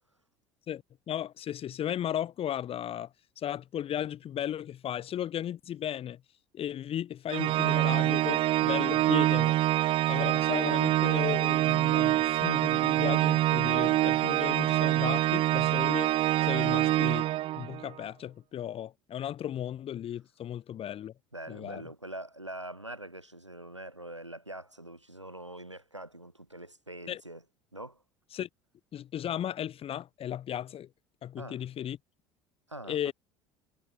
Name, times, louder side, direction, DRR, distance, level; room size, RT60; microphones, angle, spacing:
voice 1, 0.7-3.1 3.4-6.2 6.5-9.6 10.1-16.1 16.4-17.2 17.5-21.1 21.5-21.8 27.1-27.2 28.3-28.5 28.9-30.9 31.2-32.0 32.9-33.1, left 10 dB, 40° left, 6.0 m, -35 dB
Organ, 7.3-17.9, right 15 dB, 40° right, 0.4 m, -25 dB
voice 2, 21.3-27.4 27.7-28.0 31.4-31.6 32.7-33.1, right 1 dB, 90° right, 5.9 m, -44 dB
figure-of-eight pair, 65°, 15 cm